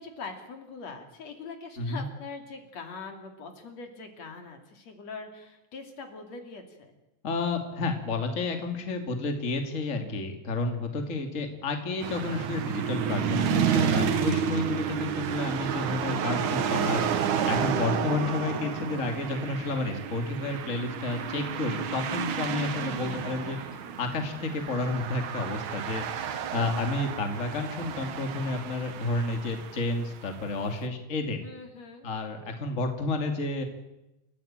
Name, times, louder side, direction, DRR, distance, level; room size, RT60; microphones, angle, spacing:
voice 1, 0.0-7.0 17.6-18.1 22.7-23.8 31.4-32.1, left 4 dB, 65° left, 5 dB, 3.9 m, -43 dB
voice 2, 7.2-23.6 24.0-31.4 32.0-33.6, left 3 dB, 25° left, 5 dB, 2.7 m, -31 dB
sound 1, 12.0-30.4, right 8 dB, 90° right, 3.0 m, -31 dB
29.0 x 15.0 x 8.9 m, 0.95 s
omnidirectional pair, 3.3 m